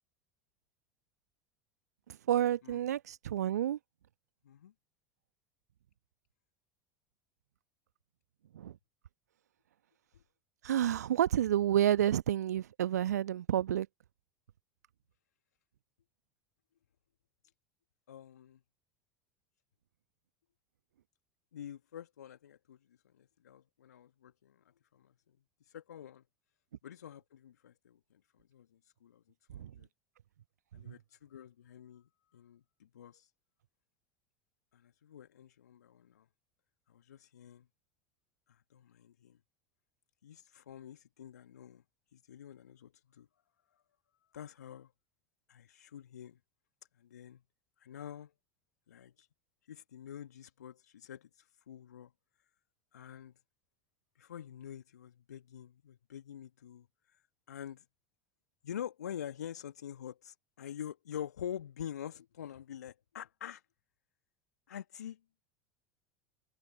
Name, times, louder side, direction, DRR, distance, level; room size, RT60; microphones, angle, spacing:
voice 1, 2.3-3.8 8.5-8.8 10.6-13.9 29.6-29.7 30.9-31.0, right 11 dB, 70° right, 1.0 m, -29 dB
voice 2, 18.1-18.6 21.5-22.8 23.1-24.6 24.9-25.1 25.6-26.2 26.8-28.2 28.5-29.2 29.5-29.9 30.7-33.3 34.7-36.2 36.9-37.6 38.5-39.4 40.2-41.8 42.1-43.3 44.3-44.9 45.5-46.4 47.0-47.4 47.8-48.3 48.9-49.3 49.7-52.1 52.9-53.3 54.2-57.2 57.5-57.8 58.6-63.6 64.7-65.2, left 9 dB, 75° left, 1.5 m, -47 dB
open air
figure-of-eight pair, 75°, 9 cm